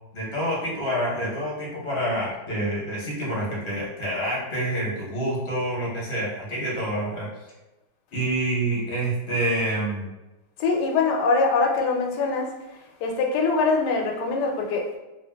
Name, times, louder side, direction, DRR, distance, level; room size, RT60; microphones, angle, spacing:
voice 1, 0.1-7.3 8.1-10.1, right 1 dB, 45° left, -6 dB, 1.1 m, -27 dB
voice 2, 10.6-12.5 13.0-15.0, left 4 dB, 90° left, 1 dB, 1.2 m, -23 dB
2.8 x 2.7 x 2.2 m, 1.1 s
omnidirectional pair, 1.7 m